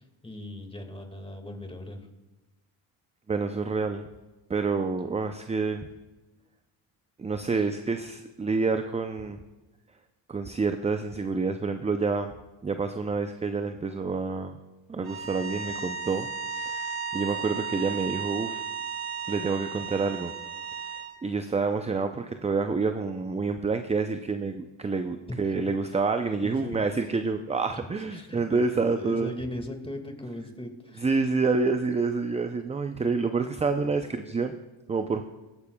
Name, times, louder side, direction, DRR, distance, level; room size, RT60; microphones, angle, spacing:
voice 1, 0.0-2.1 7.5-7.7 25.4-26.0 26.4-26.9 27.7-28.6 28.9-31.2, left 1 dB, 10° left, 5 dB, 1.8 m, -39 dB
voice 2, 3.3-4.1 4.5-5.9 7.2-9.4 10.3-12.3 12.6-14.6 14.9-18.6 19.3-20.3 21.2-29.3 31.0-34.6 34.9-35.2, right 4 dB, 15° right, 7 dB, 0.4 m, -28 dB
sound 1, 15.0-21.1, right 5 dB, 45° right, 1.8 m, -35 dB
18.5 x 9.8 x 2.3 m, 1.1 s
cardioid pair, 85°, 50 cm